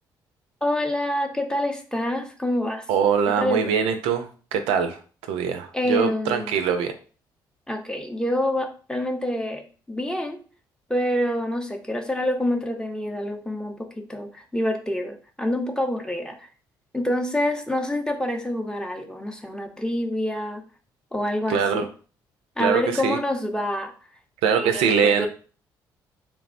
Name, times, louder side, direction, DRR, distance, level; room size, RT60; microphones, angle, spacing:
voice 1, 0.6-2.8 3.4-3.8 5.7-6.5 7.7-9.6 9.9-10.4 10.9-16.5 16.9-20.6 21.1-21.9 22.6-23.9 24.6-25.3, left 1 dB, 5° left, 4 dB, 0.6 m, -27 dB
voice 2, 2.9-5.0 5.3-6.9 21.5-21.9 22.6-23.2 24.4-25.3, right 7 dB, 75° right, 7 dB, 0.4 m, -23 dB
3.1 x 2.0 x 2.5 m, 0.39 s
hypercardioid pair, 50°, 10 cm